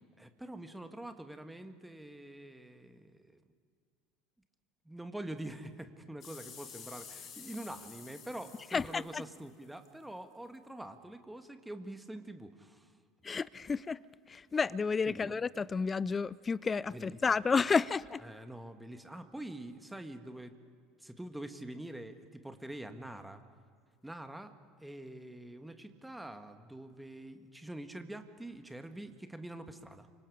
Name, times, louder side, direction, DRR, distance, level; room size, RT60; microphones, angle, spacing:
voice 1, 0.2-3.4 4.9-12.9 15.1-15.3 16.9-17.2 18.2-20.5 21.0-23.4 24.0-24.5 24.8-30.1, right 1 dB, 5° right, 1.9 m, -45 dB
sound 1, 6.2-9.9 10.5-10.6, left 7 dB, 40° left, 3.6 m, -51 dB
voice 2, 8.7-9.2 13.2-14.0 14.3-18.2, left 5 dB, 25° left, 0.5 m, -31 dB
29.0 x 25.5 x 5.0 m
figure-of-eight pair, 70°, 0 cm